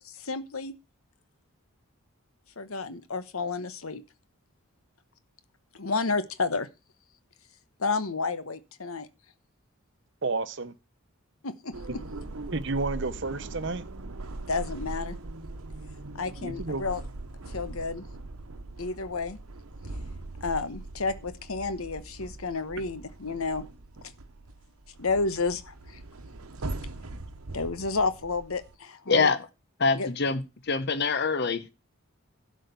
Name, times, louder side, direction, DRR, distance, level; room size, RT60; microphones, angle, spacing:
voice 1, 0.1-0.7 2.6-4.0 5.8-6.7 7.8-9.1 11.4-12.0 14.5-15.2 16.1-17.0 17.5-18.1 18.8-19.4 20.4-23.6 25.0-26.0 27.5-29.3 29.9-30.1, left 4 dB, 80° left, 1.1 m, -31 dB
voice 2, 10.2-10.7 12.5-13.9 16.4-16.8, right 3 dB, 55° right, 0.9 m, -31 dB
sound 1, 11.7-28.8, right 2 dB, 85° right, 1.0 m, -41 dB
voice 3, 29.1-29.5 29.8-31.6, left 4 dB, 50° left, 0.9 m, -25 dB
12.0 x 5.0 x 8.2 m
head